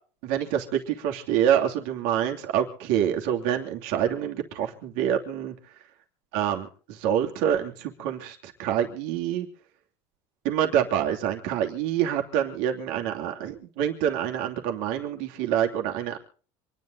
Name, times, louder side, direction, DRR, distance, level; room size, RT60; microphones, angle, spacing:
voice 1, 0.2-5.5 6.3-9.5 10.4-16.2, right 10 dB, 85° right, 3 dB, 2.9 m, -26 dB
26.5 x 11.0 x 3.9 m, 0.42 s
cardioid pair, 130°, 13 cm